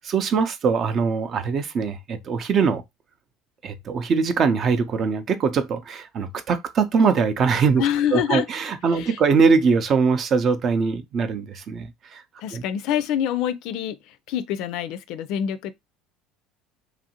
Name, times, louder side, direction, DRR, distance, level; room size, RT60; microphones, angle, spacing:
voice 1, 0.1-2.8 3.6-7.8 8.1-12.2 12.5-12.6, right 5 dB, 45° right, 0.5 m, -22 dB
voice 2, 7.8-8.5 8.9-9.2 12.4-15.7, left 10 dB, 65° left, 0.4 m, -26 dB
2.9 x 2.6 x 2.7 m
supercardioid pair, 90°, 0 cm